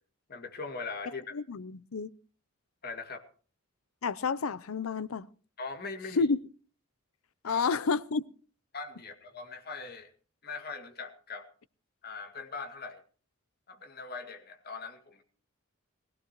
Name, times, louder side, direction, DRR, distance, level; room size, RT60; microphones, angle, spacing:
voice 1, 0.3-1.3 2.8-3.2 5.6-6.3 7.4-7.6 8.7-10.1 10.4-11.5 12.0-13.0 13.7-15.2, left 4 dB, 50° left, 2.2 m, -41 dB
voice 2, 1.3-2.1 4.0-5.3 6.2-6.4 7.4-8.2, left 4 dB, 85° left, 0.6 m, -29 dB
20.5 x 16.5 x 3.0 m
head